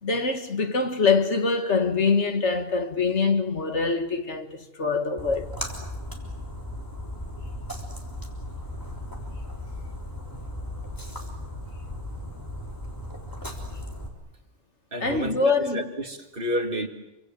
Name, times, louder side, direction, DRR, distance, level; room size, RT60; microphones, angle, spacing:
voice 1, 0.0-5.5 15.0-15.8, left 4 dB, 65° left, 2.1 m, -24 dB
Splash splatter, 5.2-14.1, left 1 dB, 15° left, 3.7 m, -36 dB
voice 2, 14.9-16.9, equal, 45° right, 2.4 m, -30 dB
28.0 x 24.5 x 7.7 m
omnidirectional pair, 1.3 m